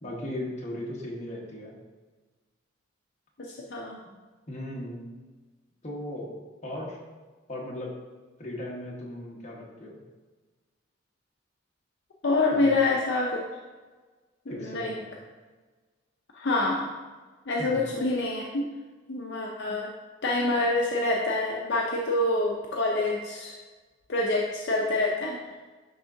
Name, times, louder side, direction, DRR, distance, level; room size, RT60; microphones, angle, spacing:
voice 1, 0.0-1.7 4.5-5.0 5.8-6.4 6.6-7.0 7.5-7.9 8.4-9.9 12.5-12.8 14.5-15.1 17.6-17.8, left 1 dB, 35° left, -3 dB, 1.2 m, -37 dB
voice 2, 3.4-4.0 12.2-13.4 14.5-14.9 16.3-16.9 17.5-18.6 19.1-19.9 20.2-23.5 24.1-25.4, left 2 dB, 60° left, -2 dB, 0.5 m, -26 dB
10.5 x 3.5 x 2.6 m, 1.3 s
head